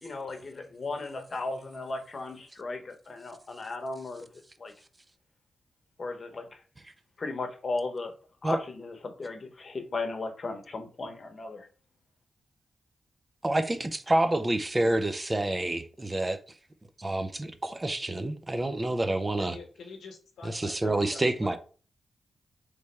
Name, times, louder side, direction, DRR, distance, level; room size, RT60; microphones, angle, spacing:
voice 1, 0.0-4.3 4.6-4.7 6.0-6.6 7.2-8.1 8.4-11.7, left 3 dB, 50° left, 1.0 m, -36 dB
voice 2, 13.4-16.4 17.0-19.6 20.4-21.6, right 1 dB, 25° right, 0.5 m, -28 dB
voice 3, 19.4-21.6, left 4 dB, 85° left, 1.0 m, -46 dB
3.4 x 3.2 x 4.2 m
cardioid pair, 65°, 0 cm